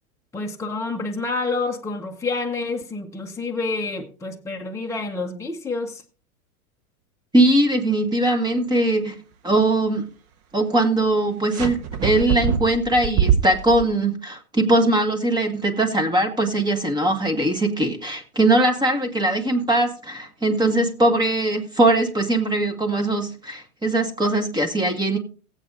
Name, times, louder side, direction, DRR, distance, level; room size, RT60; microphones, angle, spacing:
voice 1, 0.3-6.0, left 3 dB, 5° left, 1 dB, 1.0 m, -28 dB
voice 2, 7.3-9.2 9.4-10.1 10.5-25.2, right 1 dB, 10° right, 5 dB, 1.5 m, -21 dB
sound 1, 11.5-13.9, right 8 dB, 35° right, 1.1 m, -23 dB
18.5 x 8.1 x 2.5 m, 0.38 s
hypercardioid pair, 100°, 44 cm